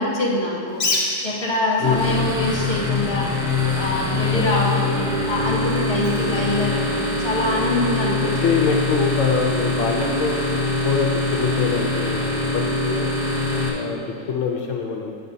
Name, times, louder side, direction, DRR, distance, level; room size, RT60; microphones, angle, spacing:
voice 1, 0.0-3.3 3.7-8.2, left 1 dB, 20° left, -6 dB, 1.2 m, -24 dB
Bird, 0.7-7.3, left 2 dB, 45° left, 1.0 m, -32 dB
voice 2, 1.8-2.2 4.3-4.5 6.2-6.5 8.2-13.1 13.7-15.1, left 5 dB, 75° left, 0 dB, 0.9 m, -25 dB
sound 1, 1.8-13.7, left 2 dB, 5° right, 1.0 m, -23 dB
8.0 x 7.8 x 2.7 m, 2.3 s
omnidirectional pair, 1.4 m